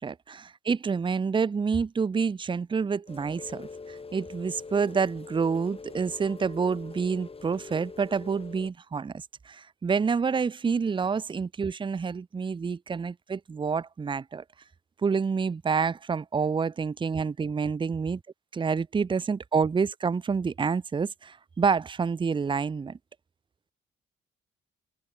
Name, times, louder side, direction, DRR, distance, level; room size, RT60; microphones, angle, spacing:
voice 1, 0.0-14.4 15.0-18.2 18.5-23.0, right 5 dB, 25° right, 0.6 m, -28 dB
Rain, 3.1-8.7, left 4 dB, 30° left, 7.1 m, -43 dB
cardioid pair, 90°, 20 cm